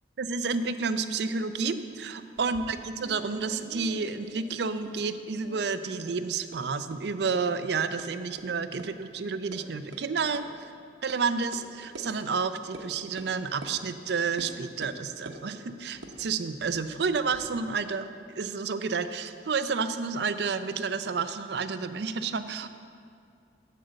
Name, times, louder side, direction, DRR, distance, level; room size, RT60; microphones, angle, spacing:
voice 1, 0.2-10.4 11.0-18.1 18.4-22.7, right 5 dB, 60° right, 11 dB, 0.4 m, -30 dB
sound 1, 2.3-5.2 5.4-6.2 6.5-6.6 6.9-7.0 7.3-7.4 8.0-8.1 8.4-8.5 8.8-8.9 9.2-9.6 9.9-10.0 10.3-10.4 11.1-11.2 11.5-11.6 11.9-12.1 12.7-12.9 13.2-13.3 13.6-13.7 14.4-14.5 14.8-15.4 15.9-17.5, right 1 dB, 80° right, 1.0 m, -46 dB
7.6 x 6.5 x 7.9 m, 2.4 s
head